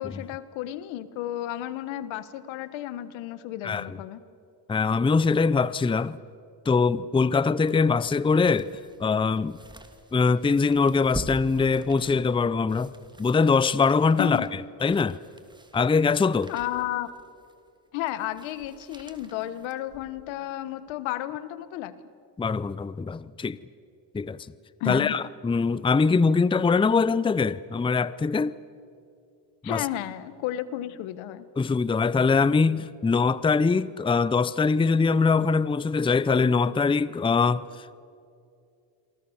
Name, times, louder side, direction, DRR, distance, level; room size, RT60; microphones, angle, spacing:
voice 1, 0.0-4.2 14.2-14.5 16.5-17.1 17.9-22.0 24.8-25.2 29.6-31.4, left 13 dB, 85° left, 1.4 m, -32 dB
voice 2, 3.6-4.0 4.7-6.2 6.7-8.7 9.0-9.6 10.1-12.9 13.2-14.5 14.8-15.2 15.7-16.5 22.4-23.6 24.1-24.4 24.9-28.5 29.6-29.9 31.6-37.9, left 4 dB, 10° left, 0.6 m, -23 dB
sound 1, 7.7-20.3 20.8-20.9, right 1 dB, 10° right, 2.7 m, -45 dB
29.0 x 23.0 x 7.3 m
cardioid pair, 95°, 45 cm